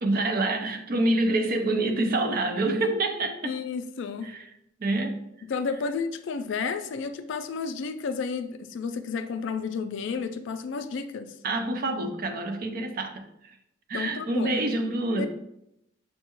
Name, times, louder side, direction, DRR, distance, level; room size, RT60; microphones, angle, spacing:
voice 1, 0.0-3.6 4.2-4.5 4.8-5.2 11.4-13.6 13.9-15.3, right 2 dB, 45° right, 6 dB, 0.4 m, -27 dB
voice 2, 3.4-4.3 5.5-11.4 13.9-14.5 15.2-15.3, left 5 dB, 60° left, 9 dB, 0.3 m, -32 dB
6.5 x 2.3 x 2.9 m, 0.80 s
head